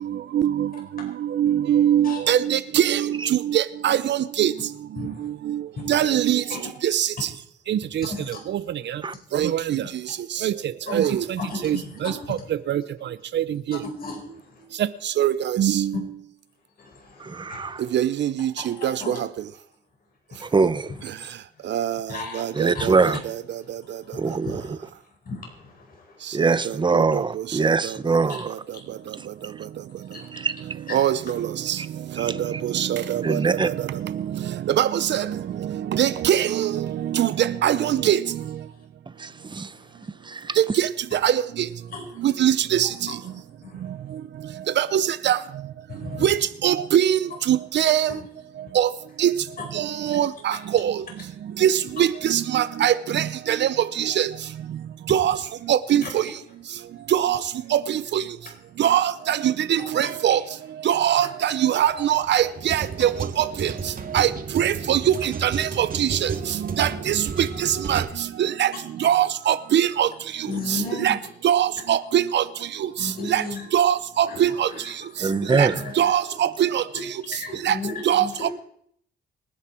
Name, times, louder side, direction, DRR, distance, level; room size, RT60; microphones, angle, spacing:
voice 1, 0.3-0.7 1.3-4.5 5.5-5.6 5.9-6.4 6.8-7.1 7.7-8.1 8.5-8.6 9.3-9.8 10.4-10.5 10.9-11.2 11.6-11.8 12.0-12.1 12.7-12.8 13.3-13.8 15.2-15.9 17.9-19.1 21.7-22.0 22.3-22.9 23.3-23.4 26.9-27.2 30.9-31.8 32.2-33.6 34.8-35.3 35.9-38.2 40.6-41.4 42.2-42.9 44.8-45.4 46.2-46.4 46.6-47.2 47.5-48.1 48.7-48.9 49.2-49.3 49.7-51.0 51.6-54.3 55.1-55.4 55.7-56.2 57.1-57.4 57.7-58.2 58.8-60.4 60.8-63.1 63.4-63.7 64.1-64.3 64.5-66.3 66.8-68.0 68.4-68.7 69.0-70.1 70.7-71.2 71.4-72.4 73.3-73.4 73.7-74.7 75.5-75.7 76.0-76.8 77.6-77.7 78.1-78.2, right 10 dB, 65° right, 0.8 m, -22 dB
voice 2, 10.9-12.1 13.8-14.2 16.8-16.9 17.5-17.6 18.6-19.2 20.4-20.5 20.9-21.0 22.1-22.4 22.7-23.1 24.1-24.7 25.3-25.4 26.5-26.6 28.3-28.4 30.1-30.3 30.9-31.1 41.9-42.0 42.8-42.9 43.6-43.7 46.0-46.3 48.1-48.2 49.6-49.7 52.0-52.1 56.0-56.1 70.5-71.2 73.0-73.7 74.3-76.1 76.9-77.0 77.4-78.5, left 3 dB, 45° left, 4.7 m, -34 dB
voice 3, 17.2-17.8 20.4-20.9 22.6-23.2 24.2-24.6 26.3-28.5 30.4-30.5 31.8-31.9 32.2-32.6 33.2-33.7 39.2-39.7 40.2-40.6 75.2-75.8, right 4 dB, 25° right, 0.9 m, -23 dB
sound 1, 61.9-68.0, right 5 dB, 45° right, 2.1 m, -32 dB
25.5 x 9.8 x 4.5 m
cardioid pair, 90°, 20 cm